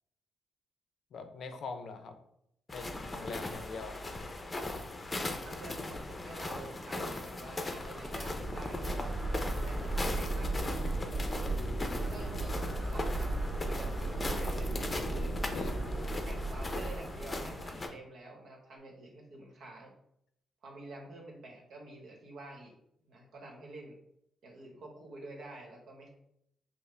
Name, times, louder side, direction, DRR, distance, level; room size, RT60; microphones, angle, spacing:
voice 1, 1.1-2.2 2.7-4.0 15.5-15.8, left 4 dB, 65° left, 7 dB, 0.5 m, -43 dB
sound 1, 2.7-17.9, left 2 dB, 25° left, 0.6 m, -39 dB
voice 2, 5.4-8.9 9.6-11.0 11.8-15.3 16.2-19.9 20.6-22.7 23.0-23.9 24.4-26.1, right 2 dB, 70° right, 0 dB, 1.2 m, -49 dB
sound 2, 7.9-17.7, right 2 dB, 30° right, 1.5 m, -35 dB
5.5 x 2.1 x 3.3 m, 0.75 s
cardioid pair, 95°, 0 cm